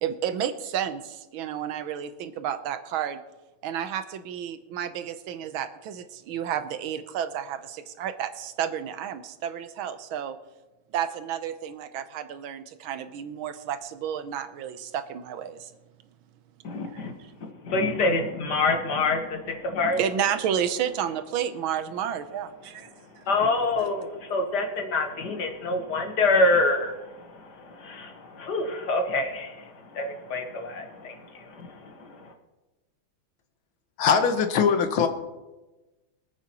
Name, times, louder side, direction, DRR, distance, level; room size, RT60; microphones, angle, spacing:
voice 1, 0.0-3.2 3.6-10.4 10.9-15.7 16.9-17.3 20.0-23.2, right 9 dB, 80° right, 11 dB, 1.5 m, -31 dB
voice 2, 16.6-17.1 17.4-20.0 23.3-32.3, left 2 dB, 55° left, 4 dB, 1.8 m, -27 dB
voice 3, 34.0-35.1, left 6 dB, 75° left, 7 dB, 1.8 m, -21 dB
24.0 x 8.8 x 3.0 m, 1.1 s
omnidirectional pair, 2.3 m